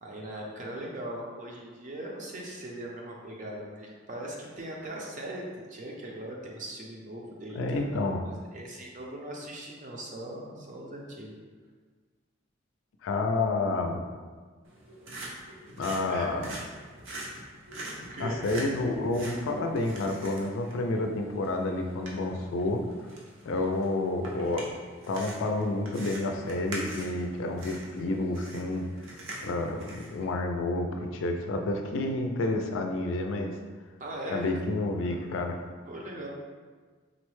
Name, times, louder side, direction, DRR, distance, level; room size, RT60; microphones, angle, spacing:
voice 1, 0.0-7.8 8.2-11.3 16.0-16.3 18.1-18.4 34.0-34.5 35.0-35.3 35.9-36.3, right 1 dB, 40° right, -2 dB, 0.5 m, -40 dB
voice 2, 7.6-8.2 13.0-14.0 15.8-16.5 18.2-22.8 23.5-24.7 25.1-28.9 29.4-33.6 34.3-35.6, left 2 dB, 80° left, 4 dB, 0.4 m, -29 dB
sound 1, 14.6-30.2, right 1 dB, 85° right, 0.7 m, -44 dB
3.9 x 2.1 x 3.1 m, 1.5 s
head